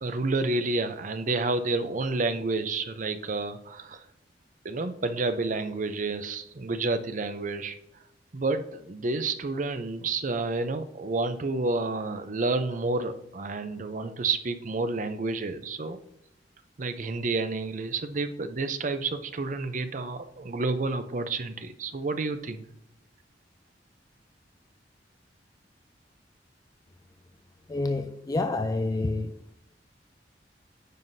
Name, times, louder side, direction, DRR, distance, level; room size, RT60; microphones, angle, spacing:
voice 1, 0.0-4.0 4.6-7.7 8.3-16.0 16.8-22.7, right 3 dB, 45° right, 0.6 m, -30 dB
voice 2, 27.7-29.3, left 2 dB, 20° left, 0.4 m, -28 dB
9.2 x 5.7 x 2.7 m
head